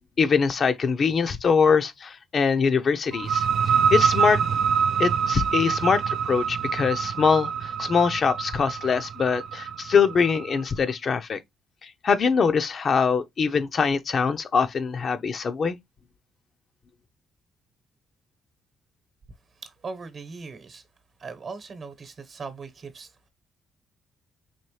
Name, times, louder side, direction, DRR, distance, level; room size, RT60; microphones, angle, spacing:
voice 1, 0.2-3.5 3.9-4.4 5.0-11.4 11.8-15.8, left 5 dB, 50° left, 0.6 m, -23 dB
sound 1, 3.1-10.6, right 7 dB, 65° right, 0.3 m, -25 dB
voice 2, 19.6-20.8 21.2-23.3, right 4 dB, 45° right, 1.0 m, -39 dB
4.3 x 3.0 x 3.1 m
cardioid pair, 90°, 0 cm